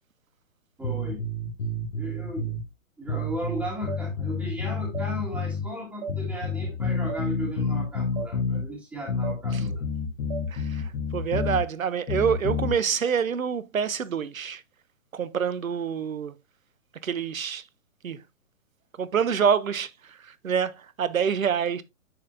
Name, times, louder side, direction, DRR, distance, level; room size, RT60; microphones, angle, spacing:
sound 1, 0.8-2.6 3.1-5.7 6.1-8.6 9.1-11.6 12.1-12.7, left 4 dB, 55° left, 1.7 m, -29 dB
voice 1, 0.8-1.2 2.0-2.5 3.0-9.8, equal, 5° right, 2.0 m, -36 dB
sound 2, 3.9-4.0 4.9-5.1 6.0-6.2 7.1-7.2 8.2-8.3 9.2-9.4 10.3-10.5 11.4-11.5, right 6 dB, 40° right, 1.2 m, -34 dB
voice 2, 10.5-14.6 15.1-16.4 17.0-17.7 18.0-18.2 19.0-21.8, right 7 dB, 85° right, 0.7 m, -27 dB
10.0 x 4.3 x 2.7 m
figure-of-eight pair, 130°, 40 cm